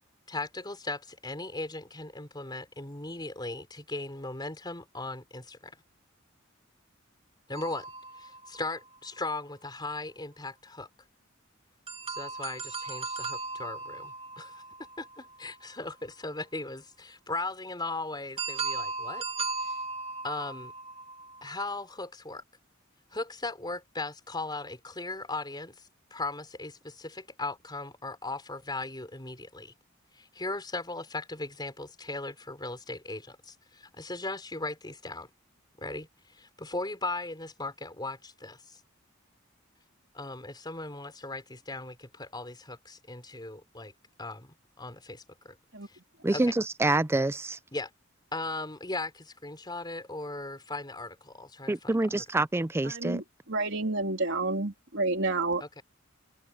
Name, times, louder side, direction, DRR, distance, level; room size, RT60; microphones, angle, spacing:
voice 1, 0.3-5.7 7.5-7.9 8.2-10.9 12.1-14.6 15.0-19.2 19.6-19.8 20.2-20.7 21.4-22.4 23.1-29.7 30.2-35.3 35.8-38.8 40.1-43.9 44.2-45.6 45.9-46.0 46.3-46.4 47.7-47.9 48.3-52.2 55.6-55.8, left 2 dB, 20° left, 3.9 m, -38 dB
sound 1, 7.5-9.3 11.9-15.8 18.4-21.8, right 4 dB, 30° right, 2.8 m, -37 dB
voice 2, 46.2-47.6 51.7-53.2, right 2 dB, 10° right, 0.4 m, -27 dB
voice 3, 52.9-55.6, right 2 dB, 65° right, 3.5 m, -30 dB
head